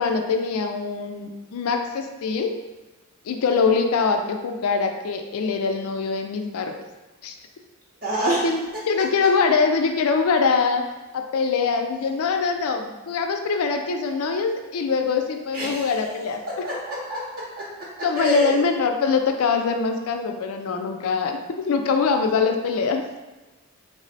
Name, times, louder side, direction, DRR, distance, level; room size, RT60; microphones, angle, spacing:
voice 1, 0.0-2.6 3.2-6.8 7.2-7.4 8.4-10.8 11.1-16.7 18.0-23.2, left 5 dB, 80° left, 5 dB, 0.4 m, -23 dB
voice 2, 8.0-8.5 15.5-15.9 16.6-18.5, right 1 dB, 40° right, -7 dB, 0.6 m, -27 dB
3.3 x 2.0 x 3.9 m, 1.1 s
head